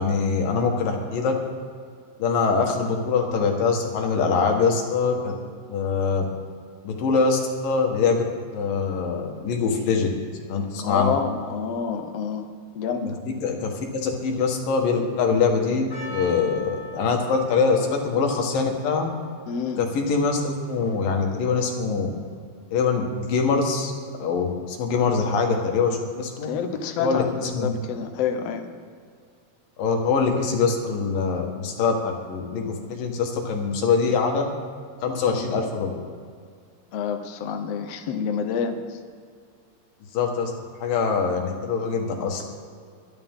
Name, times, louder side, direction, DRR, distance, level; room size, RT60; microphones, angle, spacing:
voice 1, 0.0-1.3 2.2-5.3 5.7-6.2 6.8-8.2 8.5-10.1 10.5-11.1 13.1-13.2 13.4-19.1 19.8-22.1 22.7-23.9 24.2-26.5 27.0-27.7 29.8-34.5 35.0-36.0 40.1-40.5 40.8-42.4, left 5 dB, 85° left, 2 dB, 3.4 m, -23 dB
voice 2, 10.8-12.5 12.7-13.2 19.5-19.8 26.4-28.7 35.3-35.4 36.9-39.0, left 6 dB, 65° left, 6 dB, 1.6 m, -28 dB
Percussion, 15.9-21.1, equal, 15° left, 3.4 m, -42 dB
22.5 x 11.0 x 3.7 m, 2.1 s
omnidirectional pair, 3.8 m